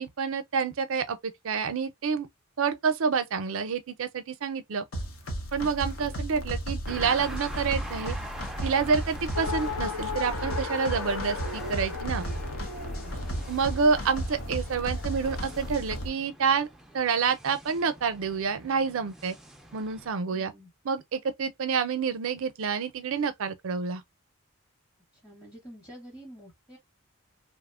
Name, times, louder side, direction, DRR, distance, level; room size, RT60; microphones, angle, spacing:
voice 1, 0.0-2.3 2.6-4.9 5.5-8.2 8.6-12.2 13.5-16.7 16.9-19.4 19.7-20.5 20.8-24.0, right 5 dB, 65° right, 0.5 m, -28 dB
sound 1, 4.9-16.1, equal, 65° left, 0.7 m, -34 dB
sound 2, 6.9-20.1, right 1 dB, ahead, 0.3 m, -45 dB
Race car auto racing, 9.3-15.6, left 4 dB, 85° left, 1.1 m, -37 dB
voice 2, 20.3-20.7 25.2-26.8, equal, 20° left, 0.9 m, -48 dB
2.8 x 2.1 x 2.3 m
head